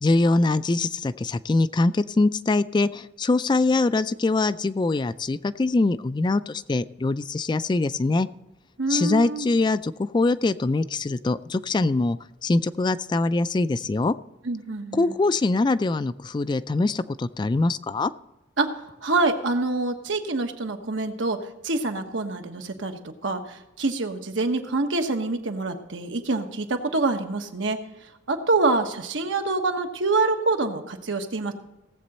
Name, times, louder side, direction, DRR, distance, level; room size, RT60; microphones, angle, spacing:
voice 1, 0.0-8.3 8.9-14.1 14.9-18.1, left 3 dB, 25° left, 14 dB, 0.3 m, -23 dB
voice 2, 8.8-9.5 14.4-15.1 18.6-21.4 21.6-27.8 28.3-31.5, right 3 dB, 85° right, 5 dB, 1.3 m, -26 dB
17.5 x 7.7 x 4.2 m, 0.94 s
head